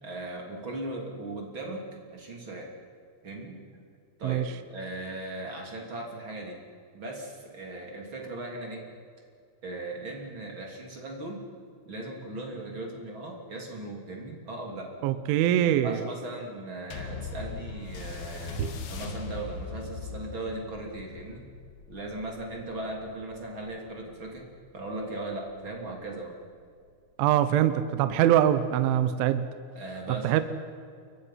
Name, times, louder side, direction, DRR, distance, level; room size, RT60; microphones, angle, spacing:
voice 1, 0.0-2.7 3.2-3.6 4.2-4.4 4.7-6.6 6.9-8.8 9.6-11.5 11.8-14.9 15.6-21.4 21.9-24.5 24.7-26.3 29.7-30.4, right 2 dB, 30° right, 0 dB, 2.7 m, -38 dB
voice 2, 15.0-16.0 18.6-18.8 27.2-29.4 30.2-30.4, right 11 dB, 75° right, 11 dB, 3.1 m, -23 dB
sound 1, 16.9-25.7 26.4-26.5, left 4 dB, 60° left, 3.2 m, -41 dB
29.0 x 23.5 x 5.8 m, 2.3 s
omnidirectional pair, 5.9 m